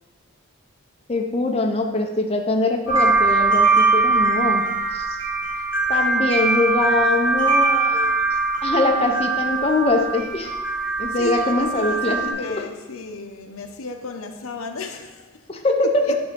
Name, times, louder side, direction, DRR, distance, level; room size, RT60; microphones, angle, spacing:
voice 1, 1.1-4.6 4.9-5.2 5.9-8.2 8.6-10.5 11.0-12.2 15.5-16.2, left 2 dB, 30° left, 2 dB, 0.6 m, -22 dB
sound 1, 2.9-12.3, right 3 dB, 20° right, 2.6 m, -21 dB
voice 2, 11.1-15.3 16.0-16.2, left 2 dB, 90° left, 5 dB, 0.8 m, -33 dB
9.6 x 3.6 x 5.9 m, 1.2 s
head